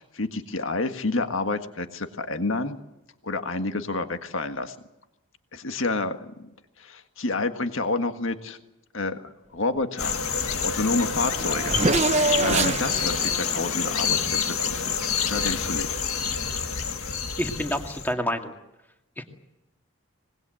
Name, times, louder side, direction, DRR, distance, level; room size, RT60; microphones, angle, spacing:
voice 1, 0.0-2.8 3.2-4.7 5.5-6.5 6.8-8.6 8.9-10.1 10.6-11.8 12.4-14.8 15.2-16.0, left 3 dB, 60° left, 8 dB, 1.7 m, -29 dB
sound 1, 10.0-18.1, left 6 dB, 75° left, 1.9 m, -27 dB
Race car auto racing / Accelerating revving vroom, 10.5-10.6 10.8-14.8, right 3 dB, 30° right, 1.2 m, -27 dB
voice 2, 17.4-18.5 19.2-19.3, equal, 10° left, 4 dB, 2.3 m, -28 dB
25.5 x 21.5 x 7.8 m, 0.91 s
head